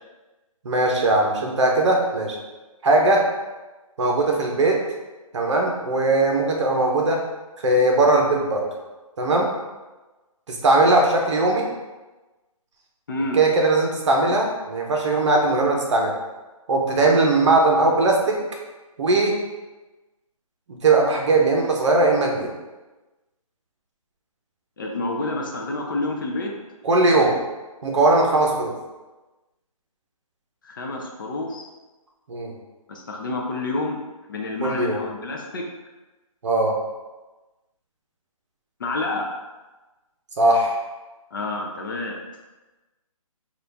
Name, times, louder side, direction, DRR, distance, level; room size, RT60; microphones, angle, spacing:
voice 1, 0.6-2.4 2.8-3.2 4.0-4.8 5.3-7.2 7.6-8.7 9.2-9.5 10.5-11.6 13.3-16.1 16.7-18.4 19.0-19.4 20.8-22.5 26.8-27.3 27.8-28.7 32.3-32.5 34.6-35.0 36.4-36.7 40.4-40.8, right 2 dB, 55° right, 0 dB, 0.9 m, -19 dB
voice 2, 13.1-13.4 24.8-26.5 30.6-31.7 32.9-34.0 34.3-35.7 38.8-39.3 41.3-42.2, left 2 dB, 35° left, 1 dB, 0.5 m, -28 dB
4.0 x 2.4 x 3.3 m, 1.1 s
hypercardioid pair, 160°, 18 cm